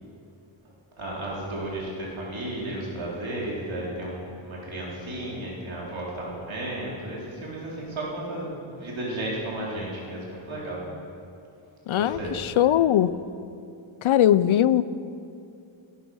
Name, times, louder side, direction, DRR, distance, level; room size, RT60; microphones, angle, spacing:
voice 1, 1.0-10.8 11.9-12.3, right 1 dB, 70° right, -5 dB, 3.8 m, -33 dB
voice 2, 11.9-13.1 14.0-14.8, left 11 dB, 75° left, 16 dB, 0.5 m, -20 dB
17.0 x 9.1 x 6.3 m, 2.6 s
wide cardioid pair, 145°, 49 cm